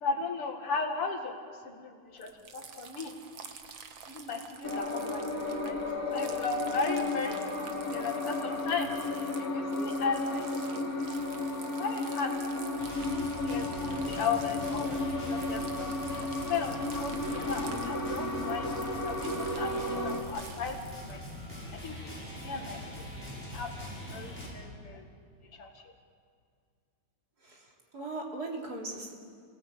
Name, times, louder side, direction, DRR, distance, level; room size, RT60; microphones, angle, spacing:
voice 1, 0.0-1.4 1.6-3.1 4.1-12.8 13.4-20.8 21.1-21.2 21.7-22.8 23.1-25.0 25.5-25.9, left 4 dB, 85° left, 3 dB, 3.0 m, -36 dB
sound 1, 2.2-21.2, right 6 dB, 65° right, 2.1 m, -49 dB
sound 2, 4.6-20.2, left 2 dB, 40° left, 3.3 m, -33 dB
sound 3, 12.8-24.5, equal, 5° left, 7.3 m, -43 dB
voice 2, 27.4-29.1, right 2 dB, 45° right, -1 dB, 3.8 m, -39 dB
29.5 x 19.0 x 8.7 m, 2.2 s
omnidirectional pair, 2.4 m